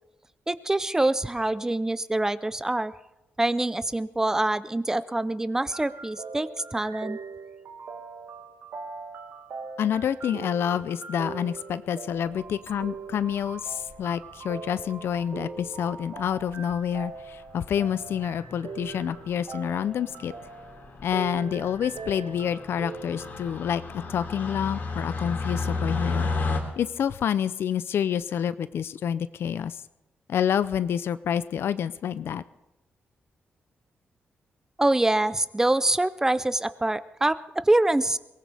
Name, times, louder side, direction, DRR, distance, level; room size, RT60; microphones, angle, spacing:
voice 1, 0.5-2.9 3.4-7.2 34.8-38.2, right 2 dB, 15° right, 15 dB, 0.6 m, -25 dB
sound 1, 5.7-23.6, right 4 dB, 75° right, 1.6 m, -41 dB
voice 2, 9.8-20.3 21.0-26.3 26.8-29.8 30.3-32.4, left 9 dB, 75° left, 15 dB, 0.5 m, -28 dB
sound 2, 12.4-12.9 13.9-14.3 15.2-15.3 15.4-15.5 15.8-15.9 16.2-16.5 17.0-17.2 17.5-26.6, left 3 dB, 60° left, 2.9 m, -34 dB
22.5 x 18.5 x 3.5 m, 0.94 s
cardioid pair, 115°, 4 cm